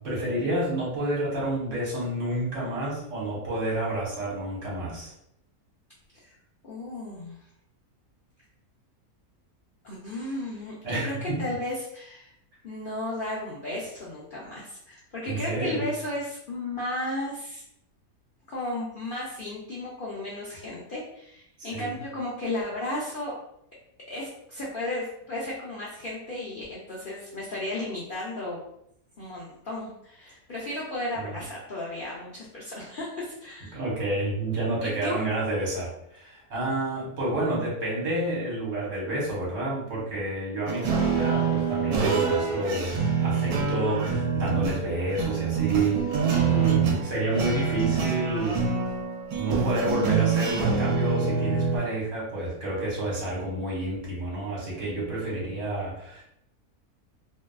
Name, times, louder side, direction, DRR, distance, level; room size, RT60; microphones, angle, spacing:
voice 1, 0.0-5.1 10.8-11.4 15.3-15.8 21.6-21.9 31.2-31.4 33.7-46.1 46.5-48.7 49.4-56.2, right 1 dB, 60° right, -5 dB, 1.4 m, -29 dB
voice 2, 6.6-7.4 9.8-12.3 12.6-17.6 18.5-23.3 24.1-28.6 29.2-33.8 34.8-35.2, left 1 dB, 75° left, -7 dB, 0.4 m, -34 dB
sound 1, 40.7-51.8, right 5 dB, 85° right, 1.1 m, -26 dB
2.6 x 2.2 x 2.2 m, 0.75 s
omnidirectional pair, 1.6 m